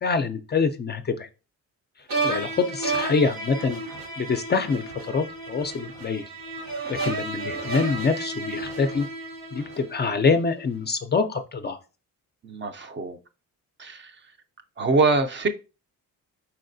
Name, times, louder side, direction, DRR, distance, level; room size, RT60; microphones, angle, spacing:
voice 1, 0.0-1.3 2.2-3.8 4.2-6.3 6.9-9.1 9.5-11.8, left 4 dB, 30° left, 0.4 m, -25 dB
sound 1, 2.1-10.3, right 2 dB, 75° right, 1.2 m, -32 dB
voice 2, 12.4-13.2 13.8-14.1 14.8-15.5, right 3 dB, 35° right, 0.5 m, -24 dB
4.7 x 4.2 x 2.6 m
cardioid pair, 135°, 34 cm